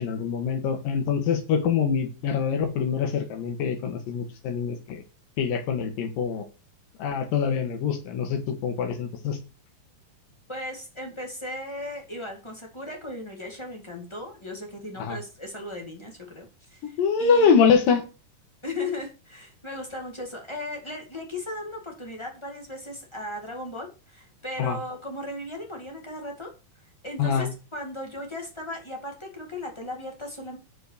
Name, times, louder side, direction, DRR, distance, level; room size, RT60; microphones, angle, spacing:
voice 1, 0.0-5.0 5.4-6.4 7.0-9.4 15.0-15.2 16.8-18.0 24.6-24.8 27.2-27.5, left 6 dB, 75° left, 6 dB, 3.0 m, -24 dB
voice 2, 10.5-17.5 18.6-26.5 27.0-30.6, left 1 dB, 25° left, 0 dB, 0.6 m, -37 dB
6.6 x 5.2 x 6.5 m, 0.31 s
omnidirectional pair, 4.0 m